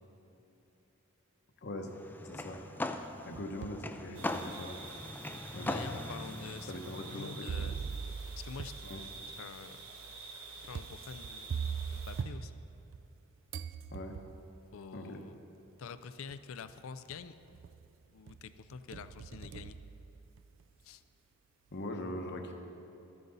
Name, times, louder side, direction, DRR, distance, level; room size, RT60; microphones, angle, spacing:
sound 1, 1.9-7.4, left 2 dB, 10° left, 0.3 m, -40 dB
voice 1, 2.2-2.6 3.3-4.8 5.5-6.0 6.7-7.8 8.8-9.0 13.9-14.1 14.9-15.2 21.7-22.5, left 1 dB, 55° left, 4 dB, 1.0 m, -41 dB
sound 2, 3.0-3.9 4.5-4.6 5.5-5.6 7.5-13.2 13.5-14.5 15.7-15.8 16.3-16.7 17.1-17.9 18.3-20.6, right 6 dB, 60° right, 0.4 m, -42 dB
sound 3, 4.1-12.2, right 3 dB, 80° right, 1.4 m, -48 dB
voice 2, 5.7-6.7 7.1-7.8 8.3-9.1 9.4-9.9 10.7-11.5 11.9-12.6 14.7-15.4 15.8-17.6 18.1-19.8 20.8-21.0, left 5 dB, 70° left, 13 dB, 0.4 m, -47 dB
13.0 x 9.3 x 4.0 m, 2.9 s
head